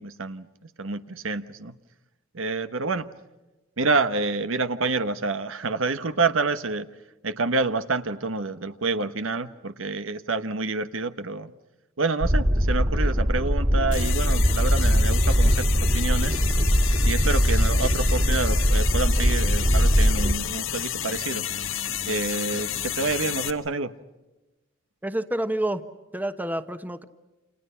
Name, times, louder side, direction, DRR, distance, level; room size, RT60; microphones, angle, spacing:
voice 1, 0.0-1.7 2.3-3.1 3.8-6.9 7.2-11.5 12.0-16.4 17.0-21.4 22.0-23.9, right 3 dB, 85° right, 1.2 m, -28 dB
sound 1, 12.2-20.3, equal, 40° right, 2.6 m, -21 dB
sound 2, 13.9-23.5, left 10 dB, 80° left, 1.5 m, -31 dB
voice 2, 25.0-25.8 26.1-27.0, right 1 dB, 10° right, 1.1 m, -28 dB
29.0 x 28.5 x 5.8 m
head